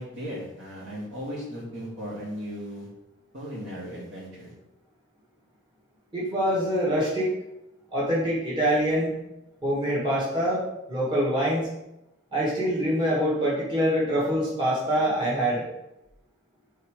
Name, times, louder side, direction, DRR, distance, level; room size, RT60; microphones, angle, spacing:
voice 1, 0.0-2.9 3.3-4.5, equal, 60° right, -5 dB, 2.1 m, -36 dB
voice 2, 6.1-7.3 7.9-9.2 9.6-10.6 10.9-11.7 12.3-15.6, equal, 20° right, -7 dB, 1.6 m, -25 dB
5.6 x 3.7 x 4.9 m, 0.89 s
head